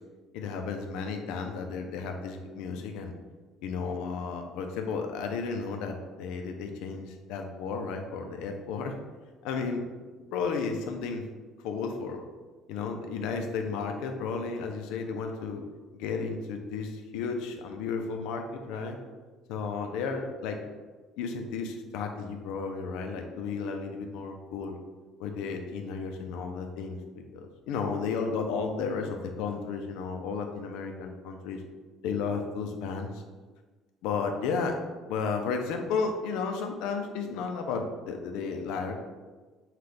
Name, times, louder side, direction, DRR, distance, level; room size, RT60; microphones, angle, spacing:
voice 1, 0.3-3.1 3.6-8.9 9.4-9.8 10.3-11.3 11.6-12.2 12.7-15.6 15.9-19.0 19.5-20.6 21.2-24.8 25.2-31.6 32.0-33.2 34.0-34.8 35.1-38.9, left 5 dB, 85° left, 4 dB, 0.6 m, -33 dB
5.8 x 2.4 x 3.3 m, 1.3 s
cardioid pair, 175°, 0 cm